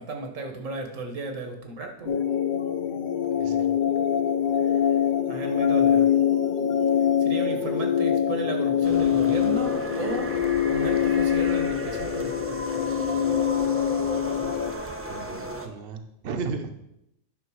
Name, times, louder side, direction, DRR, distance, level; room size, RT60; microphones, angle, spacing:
voice 1, 0.0-2.1 4.6-6.2 7.2-10.3 10.7-12.7, right 3 dB, 90° right, 5 dB, 1.6 m, -34 dB
sound 1, 2.1-14.7, left 9 dB, 50° left, 0.7 m, -24 dB
voice 2, 3.4-3.7 15.0-16.7, right 4 dB, 55° right, 6 dB, 0.9 m, -34 dB
sound 2, 8.8-15.7, right 1 dB, 15° right, 0.6 m, -36 dB
9.1 x 5.9 x 4.7 m, 0.83 s
omnidirectional pair, 1.3 m